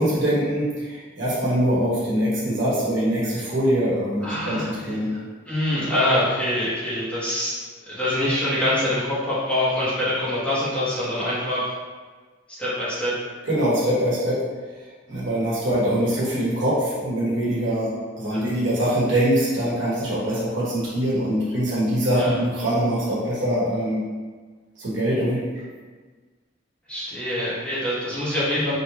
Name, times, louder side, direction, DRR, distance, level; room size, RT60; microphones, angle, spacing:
voice 1, 0.0-5.1 13.5-14.4 15.1-24.0 24.8-25.4, equal, 75° right, -7 dB, 1.2 m, -23 dB
voice 2, 4.2-5.0 5.5-11.7 12.5-13.2 15.6-15.7 18.3-18.4 22.1-22.3 26.9-28.7, left 1 dB, 5° left, -11 dB, 1.1 m, -25 dB
3.3 x 2.8 x 2.9 m, 1.4 s
head